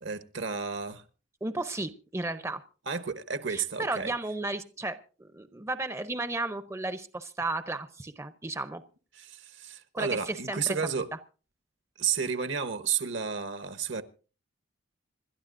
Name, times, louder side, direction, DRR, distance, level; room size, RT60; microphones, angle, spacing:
voice 1, 0.0-1.0 2.9-4.1 9.1-11.1 12.0-14.0, right 6 dB, 65° right, 1.0 m, -32 dB
voice 2, 1.4-2.6 3.5-8.8 9.9-10.8, right 2 dB, 15° right, 0.6 m, -34 dB
26.5 x 12.0 x 2.5 m
head